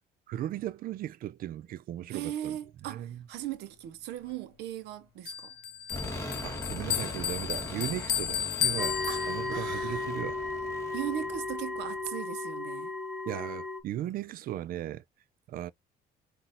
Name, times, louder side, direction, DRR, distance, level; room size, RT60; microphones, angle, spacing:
voice 1, 0.3-2.5 2.9-3.2 6.4-9.0 9.3-10.4 13.3-15.0 15.5-15.7, right 12 dB, 60° right, 0.5 m, -37 dB
voice 2, 2.1-5.5 9.1-10.1 10.9-12.9, right 12 dB, 85° right, 1.0 m, -38 dB
Bell, 5.3-9.8, left 10 dB, 65° left, 0.7 m, -33 dB
sound 1, 5.9-12.0, left 1 dB, 15° left, 2.1 m, -41 dB
sound 2, 8.8-13.8, left 2 dB, ahead, 0.8 m, -35 dB
5.6 x 2.7 x 2.9 m
cardioid pair, 110°, 17 cm